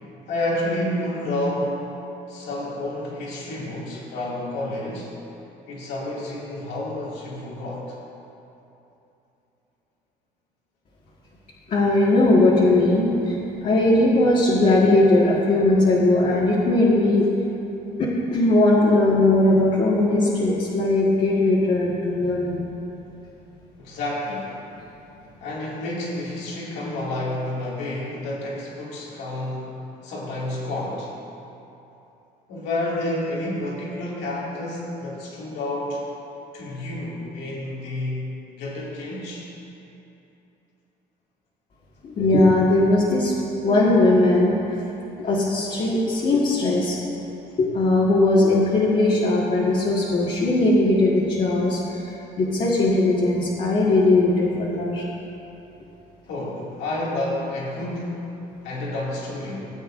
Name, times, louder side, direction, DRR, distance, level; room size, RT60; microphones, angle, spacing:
voice 1, 0.3-1.9 2.3-5.1 5.7-8.0 23.8-24.6 25.4-31.1 32.5-36.0 36.5-39.5 56.3-59.6, left 1 dB, 90° left, -5 dB, 2.4 m, -30 dB
voice 2, 11.7-17.3 18.0-22.6 42.0-43.3 43.6-44.6 45.2-47.0 47.6-55.1, left 2 dB, 45° left, -6 dB, 1.7 m, -19 dB
18.0 x 8.3 x 2.6 m, 2.9 s
cardioid pair, 110°, 17 cm